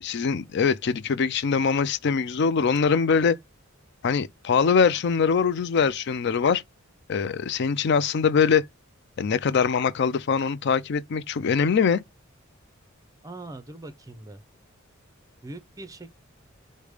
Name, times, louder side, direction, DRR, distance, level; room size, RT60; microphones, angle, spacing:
voice 1, 0.0-3.4 4.0-6.6 7.1-8.6 9.2-12.0, left 6 dB, 55° left, 0.4 m, -23 dB
voice 2, 13.2-14.4 15.4-16.1, right 2 dB, 15° right, 0.6 m, -41 dB
4.9 x 2.2 x 4.8 m
head